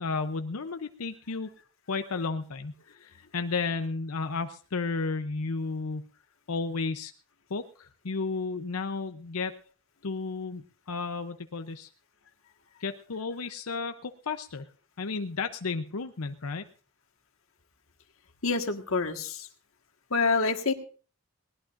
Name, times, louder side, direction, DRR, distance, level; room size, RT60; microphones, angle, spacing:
voice 1, 0.0-1.5 1.9-6.1 6.5-7.1 7.5-9.5 10.0-11.9 12.8-14.7 15.0-16.6, left 4 dB, 85° left, 8 dB, 0.7 m, -33 dB
voice 2, 18.4-19.5 20.1-20.7, left 4 dB, 70° left, 5 dB, 1.7 m, -27 dB
20.0 x 19.0 x 2.6 m, 0.39 s
head